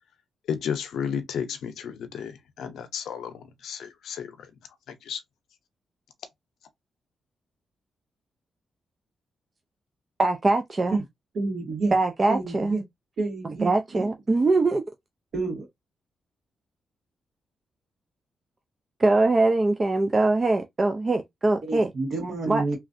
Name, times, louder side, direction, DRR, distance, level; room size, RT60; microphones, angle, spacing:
voice 1, 0.5-4.5 4.9-5.2, left 7 dB, 85° left, 0.6 m, -33 dB
voice 2, 10.2-11.0 11.9-12.8 13.4-14.8 19.0-21.9 22.5-22.6, right 2 dB, 25° right, 0.3 m, -22 dB
voice 3, 11.3-11.9 12.3-12.8 13.2-14.1 15.3-15.7 21.6-22.8, right 3 dB, 60° right, 1.5 m, -29 dB
3.0 x 2.4 x 2.5 m
cardioid pair, 125°, 0 cm